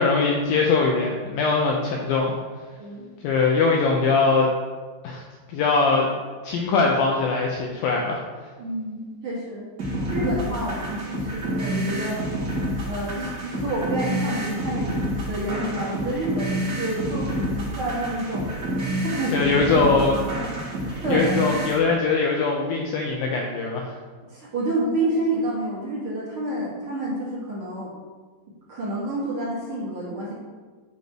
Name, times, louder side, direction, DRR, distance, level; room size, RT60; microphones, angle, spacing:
voice 1, 0.0-2.3 3.2-4.5 5.0-5.2 5.5-6.1 6.4-8.2 19.3-20.2 21.1-23.9, left 4 dB, 80° left, 0 dB, 2.2 m, -21 dB
voice 2, 8.6-9.6 10.1-12.4 12.8-15.0 15.3-18.5 19.0-19.5 19.8-20.3 20.7-21.3 24.3-27.9 28.7-30.3, right 1 dB, 35° right, -8 dB, 2.6 m, -29 dB
sound 1, 9.8-21.8, right 1 dB, 65° right, 1.0 m, -28 dB
8.2 x 5.3 x 6.2 m, 1.5 s
omnidirectional pair, 4.9 m